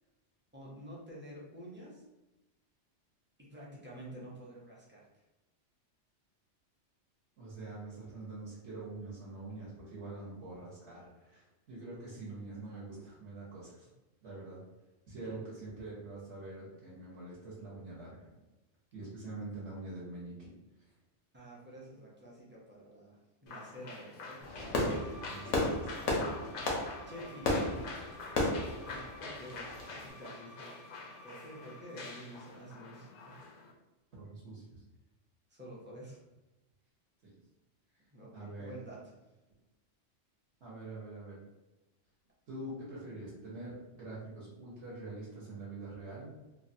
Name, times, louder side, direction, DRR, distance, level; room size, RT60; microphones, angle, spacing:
voice 1, 0.5-2.0 3.4-5.0 15.2-15.4 21.3-24.5 27.1-27.8 28.2-28.4 28.8-30.8 31.2-33.4 35.5-36.2 38.1-39.1, right 1 dB, 15° right, -6 dB, 0.4 m, -49 dB
voice 2, 7.4-13.9 14.2-14.6 15.1-18.3 18.9-20.5 20.8-20.9 25.3-26.2 34.2-34.8 37.2-37.3 38.3-38.7 40.6-41.4 42.5-46.3, right 2 dB, 65° right, -8 dB, 1.1 m, -45 dB
sound 1, 23.5-33.7, left 3 dB, 60° left, 0.6 m, -47 dB
Fireworks, 24.4-30.0, left 2 dB, 85° left, 1.0 m, -34 dB
Bowed string instrument, 24.9-32.2, equal, 40° right, 1.1 m, -55 dB
3.0 x 2.2 x 2.6 m, 1.0 s
omnidirectional pair, 1.2 m